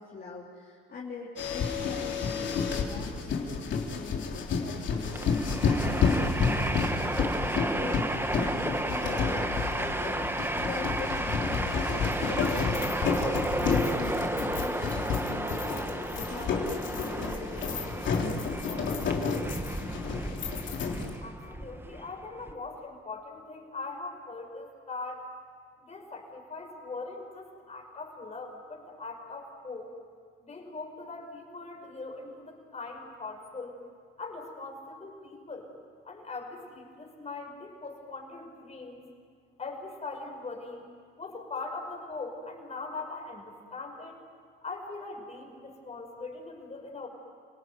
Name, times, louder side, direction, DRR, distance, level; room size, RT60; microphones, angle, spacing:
voice 1, 0.0-19.6, left 4 dB, 50° left, -5 dB, 3.6 m, -43 dB
sound 1, 1.4-21.2, left 5 dB, 70° left, 3.5 m, -30 dB
Train, 4.9-22.5, right 1 dB, 10° right, 1.7 m, -33 dB
sound 2, 10.3-17.9, left 5 dB, 90° left, 5.6 m, -50 dB
voice 2, 21.2-25.2 25.8-29.9 30.4-33.8 34.2-35.7 36.0-39.0 39.6-40.9 41.2-44.2 44.6-47.1, left 3 dB, 35° left, 2 dB, 6.1 m, -41 dB
29.0 x 18.5 x 9.3 m, 2.1 s
cardioid pair, 90°, 20 cm